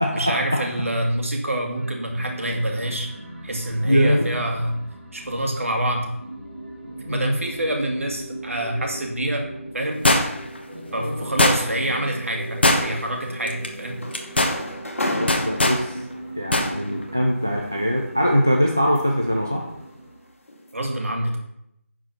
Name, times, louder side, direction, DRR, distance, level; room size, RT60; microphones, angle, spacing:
voice 1, 0.1-3.1 3.4-4.7 5.1-6.1 7.1-9.4 9.7-10.0 10.9-13.9 20.7-21.4, right 1 dB, 60° right, 2 dB, 2.3 m, -26 dB
sound 1, 1.7-20.3, right 1 dB, 45° right, 2.0 m, -38 dB
voice 2, 3.8-4.3 7.1-7.4 11.0-11.2 15.1-16.0 16.4-19.7, equal, 10° right, 0 dB, 0.3 m, -22 dB
sound 2, 10.0-10.6 11.4-11.9 12.6-13.1 13.5-13.7 14.1-14.6 15.3-15.8 16.5-16.7 17.0-17.1, left 1 dB, 45° left, 1.2 m, -19 dB
sound 3, 13.4-16.3 17.4-19.3 19.8-20.0 20.5-20.7, left 1 dB, 60° left, 2.5 m, -33 dB
10.5 x 4.7 x 5.7 m, 0.79 s
figure-of-eight pair, 175°, 8 cm